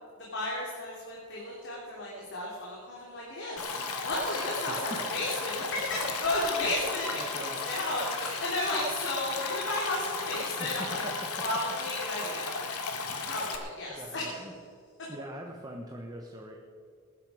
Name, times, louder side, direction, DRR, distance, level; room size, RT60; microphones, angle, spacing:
voice 1, 0.2-3.6 4.0-11.0 11.4-12.7 13.2-14.4, left 1 dB, 55° left, -4 dB, 3.0 m, -33 dB
Stream, 3.6-13.6, left 4 dB, 90° left, 1.8 m, -35 dB
voice 2, 4.7-5.0 6.5-6.7 7.1-7.7 10.6-11.5 13.9-14.5 15.1-16.5, right 1 dB, 15° right, 0 dB, 1.1 m, -43 dB
19.0 x 11.0 x 4.9 m, 2.4 s
head